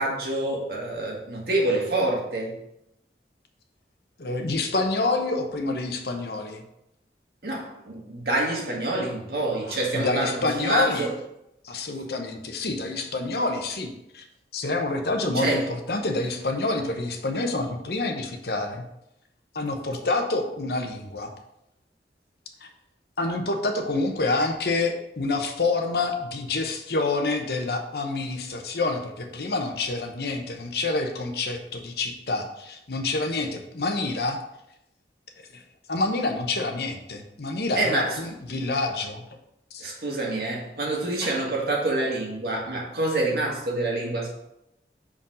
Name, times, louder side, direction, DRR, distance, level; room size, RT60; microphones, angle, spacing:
voice 1, 0.0-2.5 7.4-11.1 15.3-15.7 37.8-38.2 39.8-44.3, right 2 dB, 60° right, -2 dB, 1.9 m, -27 dB
voice 2, 4.2-6.6 9.9-11.1 11.6-14.2 14.5-15.6 15.9-18.8 19.5-21.3 23.2-34.4 35.5-35.6 35.9-39.2 39.7-39.8, left 3 dB, 65° left, 5 dB, 0.9 m, -27 dB
5.5 x 5.0 x 5.0 m, 0.83 s
head